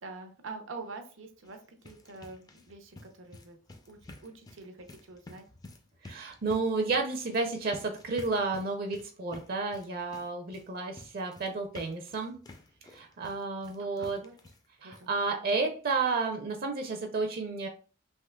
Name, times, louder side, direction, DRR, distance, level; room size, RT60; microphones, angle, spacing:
voice 1, 0.0-3.6 3.9-5.4 12.9-13.2 13.8-14.3 14.8-15.4, right 3 dB, 90° right, 6 dB, 0.7 m, -46 dB
sound 1, 1.3-14.7 14.9-15.1 15.5-15.6 15.9-16.0, left 2 dB, 20° left, 0.4 m, -52 dB
voice 2, 6.0-12.4 12.9-14.2 14.8-17.7, right 3 dB, 50° right, 4 dB, 0.5 m, -31 dB
3.6 x 2.7 x 2.2 m, 0.38 s
head